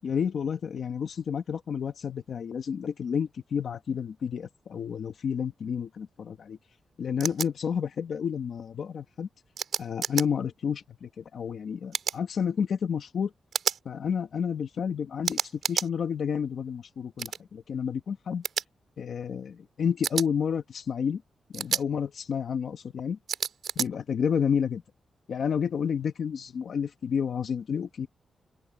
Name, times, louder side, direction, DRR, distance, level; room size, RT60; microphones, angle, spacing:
voice 1, 0.0-6.6 7.0-9.3 9.8-13.3 13.8-18.4 19.0-21.2 21.5-23.2 23.7-24.8 25.3-28.1, left 7 dB, 55° left, 1.4 m, -30 dB
sound 1, 7.2-7.5 9.6-10.3 11.9-12.2 13.5-13.8 15.2-15.9 17.2-17.4 18.4-18.6 20.0-20.3 21.5-21.8 23.3-23.9, right 7 dB, 65° right, 2.5 m, -30 dB
open air
wide cardioid pair, 180°, 0 cm